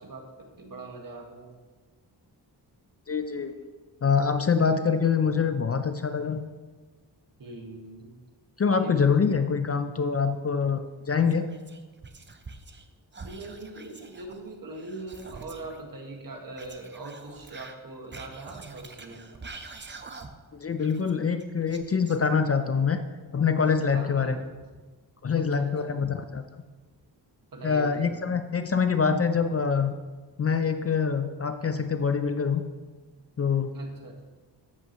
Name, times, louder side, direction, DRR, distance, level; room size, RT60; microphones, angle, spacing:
voice 1, 0.0-1.5 7.4-8.2 8.8-9.2 13.2-19.4 23.9-24.4 25.4-26.0 27.5-28.3 33.7-34.2, right 2 dB, 50° right, 1 dB, 1.8 m, -42 dB
voice 2, 3.1-3.6 4.0-6.4 8.6-11.5 20.5-23.0 23.3-24.4 25.2-26.4 27.6-30.0 30.4-32.6 33.4-33.8, left 6 dB, 35° left, 9 dB, 0.5 m, -25 dB
Whispering, 11.3-12.9 13.1-15.8 16.5-20.5 20.8-22.6, right 3 dB, 25° right, 0.8 m, -46 dB
13.5 x 8.1 x 3.0 m, 1.4 s
wide cardioid pair, 105°, 42 cm